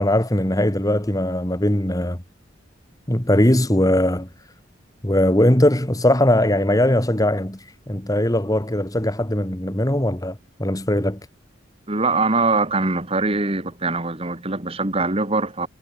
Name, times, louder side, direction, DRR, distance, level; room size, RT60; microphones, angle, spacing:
voice 1, 0.0-2.2 3.1-4.3 5.0-7.6 7.9-11.2, left 1 dB, 20° left, 2.0 m, -20 dB
voice 2, 11.9-15.7, right 3 dB, 30° right, 2.1 m, -22 dB
head